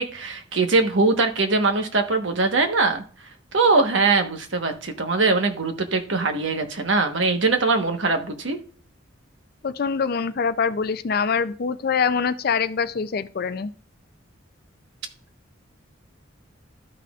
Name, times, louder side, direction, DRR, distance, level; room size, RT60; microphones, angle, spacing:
voice 1, 0.0-3.0 3.5-8.6, right 3 dB, 70° right, 5 dB, 1.2 m, -22 dB
voice 2, 9.6-13.7, left 6 dB, 50° left, 14 dB, 0.4 m, -24 dB
13.5 x 5.8 x 2.4 m, 0.42 s
head